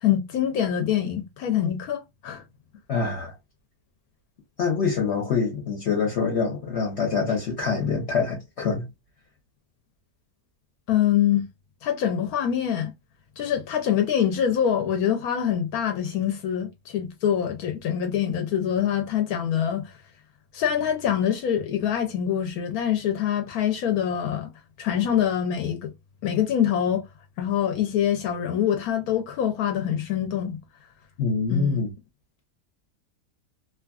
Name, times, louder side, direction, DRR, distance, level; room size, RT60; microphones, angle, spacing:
voice 1, 0.0-2.4 10.9-11.4 11.8-12.9 13.4-19.9 20.5-24.5 24.8-25.9 26.2-27.0 27.4-30.6 31.5-31.8, left 9 dB, 80° left, 1.1 m, -25 dB
voice 2, 2.9-3.3 4.6-8.9 31.2-31.9, left 5 dB, 55° left, 1.0 m, -25 dB
2.8 x 2.4 x 2.3 m
omnidirectional pair, 1.6 m